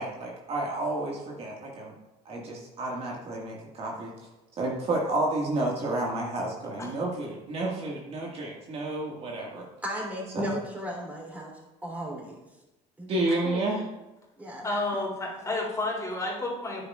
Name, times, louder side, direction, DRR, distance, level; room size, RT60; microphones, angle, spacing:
voice 1, 0.0-1.9 2.3-4.1 4.6-9.7 10.3-10.5 13.1-13.9, right 2 dB, 45° right, -2 dB, 1.8 m, -30 dB
voice 2, 9.8-11.5 11.8-12.4 13.0-13.1 13.4-13.8 14.4-14.7, equal, 10° right, -2 dB, 3.3 m, -35 dB
voice 3, 14.6-16.8, left 2 dB, 20° left, -3 dB, 3.0 m, -30 dB
9.8 x 9.4 x 2.4 m, 1.0 s
supercardioid pair, 100°, 14 cm